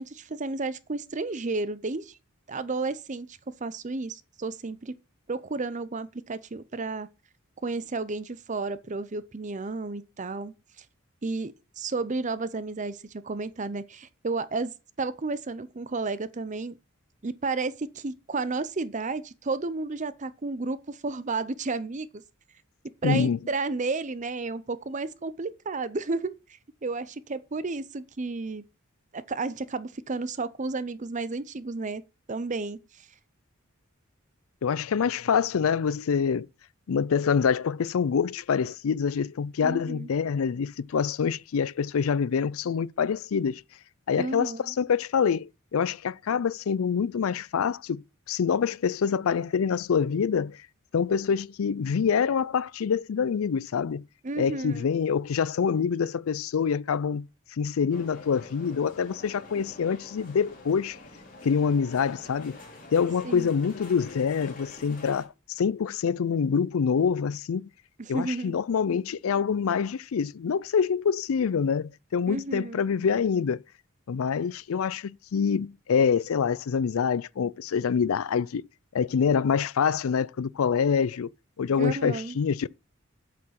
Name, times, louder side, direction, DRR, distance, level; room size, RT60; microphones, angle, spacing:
voice 1, 0.0-2.2 2.5-4.9 5.3-7.1 7.6-10.5 11.2-14.7 15.0-16.8 17.2-22.2 23.0-26.3 26.8-28.6 29.1-32.0 32.3-33.1 39.6-40.1 44.2-44.7 54.2-54.9 63.2-63.5 68.0-68.6 72.3-72.8 81.8-82.3, right 3 dB, 35° right, 0.6 m, -32 dB
voice 2, 23.0-23.4 34.6-36.5 36.9-43.6 44.1-48.0 48.3-50.6 50.9-54.0 54.4-57.3 57.6-61.0 61.4-62.6 62.9-67.6 68.1-73.6 74.1-78.6 78.9-81.3 81.6-82.7, left 6 dB, 80° left, 0.4 m, -26 dB
sound 1, 57.9-65.3, left 2 dB, 40° left, 3.8 m, -47 dB
8.5 x 6.6 x 5.8 m
head